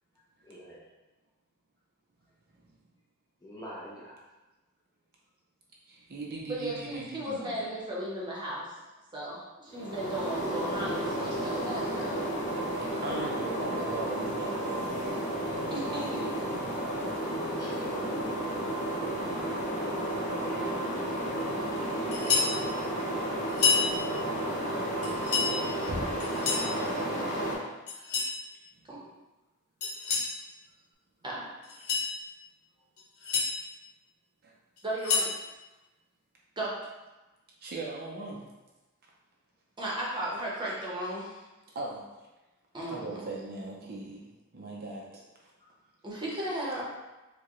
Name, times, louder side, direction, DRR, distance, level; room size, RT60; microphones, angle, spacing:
voice 1, 0.5-0.8 3.4-4.2 17.6-18.2 22.0-23.0 45.6-45.7, equal, 15° left, -6 dB, 0.6 m, -46 dB
voice 2, 5.9-7.7 11.4-11.5 13.0-15.2 28.7-28.8 34.4-34.5 37.6-38.4 40.6-40.7 41.7-42.0 42.9-45.2 46.3-46.5, right 2 dB, 45° right, -3 dB, 0.5 m, -39 dB
voice 3, 6.5-8.7 9.1-12.1 15.7-16.1 28.9-29.0 31.2-31.4 34.8-35.3 36.6-36.7 39.8-41.4 42.7-43.2 46.0-46.8, right 1 dB, 20° right, -6 dB, 0.9 m, -35 dB
sound 1, 9.7-27.6, right 1 dB, 35° left, 1.2 m, -32 dB
sound 2, 22.1-22.5 23.5-23.9 25.0-25.5 26.2-26.7 27.9-28.3 29.8-30.3 31.6-32.1 33.0-33.5 34.8-35.3, left 5 dB, 70° left, 1.0 m, -28 dB
Knock, 25.9-26.8, equal, 85° right, 0.8 m, -39 dB
4.6 x 2.2 x 3.0 m, 1.1 s
head